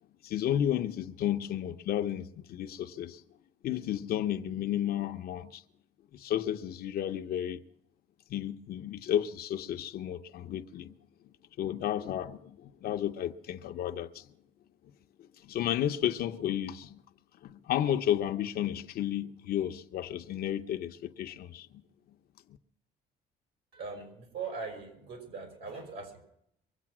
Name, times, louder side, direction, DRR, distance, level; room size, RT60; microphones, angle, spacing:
voice 1, 0.2-3.2 3.6-5.6 6.1-7.6 8.3-10.9 11.6-14.3 15.2-17.0 17.4-21.8, left 11 dB, 65° left, 0.8 m, -32 dB
voice 2, 23.7-26.2, right 4 dB, 75° right, 5.4 m, -41 dB
23.5 x 8.2 x 6.1 m
cardioid pair, 110°, 17 cm